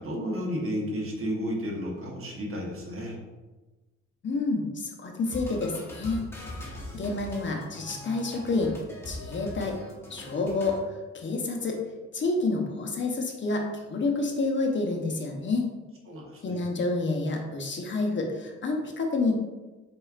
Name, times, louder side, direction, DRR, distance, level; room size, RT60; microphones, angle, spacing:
voice 1, 0.0-3.2 16.1-16.6, equal, 45° right, -1 dB, 1.2 m, -32 dB
voice 2, 4.2-6.2 6.9-8.7 9.0-9.8 10.1-11.8 12.1-15.7 16.4-19.3, left 3 dB, 40° left, 2 dB, 0.8 m, -29 dB
sound 1, 5.3-10.8, left 1 dB, 10° left, 1.2 m, -41 dB
4.7 x 4.3 x 2.4 m, 1.2 s
cardioid pair, 90°, 30 cm